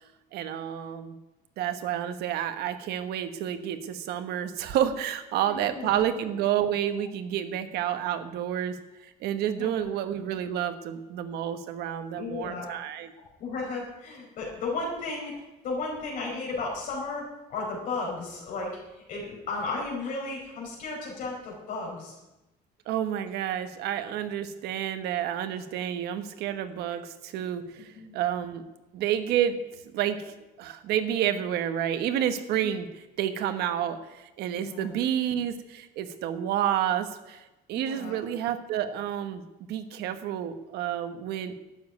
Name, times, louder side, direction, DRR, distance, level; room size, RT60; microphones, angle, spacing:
voice 1, 0.3-1.2 1.6-8.8 9.0-13.1 22.9-28.7 28.9-29.6 29.9-39.4 39.7-41.6, right 10 dB, 90° right, 9 dB, 1.3 m, -30 dB
voice 2, 5.5-6.0 9.6-9.9 12.2-12.7 13.4-22.2 27.9-28.1 32.6-32.7 34.5-34.9 37.7-38.2, left 3 dB, 55° left, -2 dB, 4.8 m, -34 dB
12.5 x 7.4 x 9.4 m, 1.0 s
cardioid pair, 175°, 16 cm